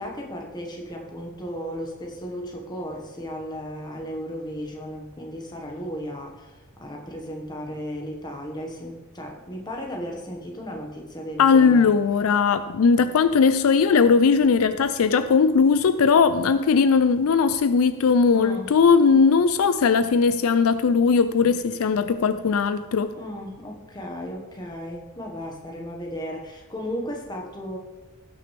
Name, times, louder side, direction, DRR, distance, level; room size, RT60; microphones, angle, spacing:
voice 1, 0.0-11.9 18.3-18.7 23.2-27.8, equal, 20° left, 1.4 m, -35 dB
voice 2, 11.4-23.1, left 5 dB, 70° left, 0.4 m, -19 dB
16.5 x 6.3 x 3.3 m
head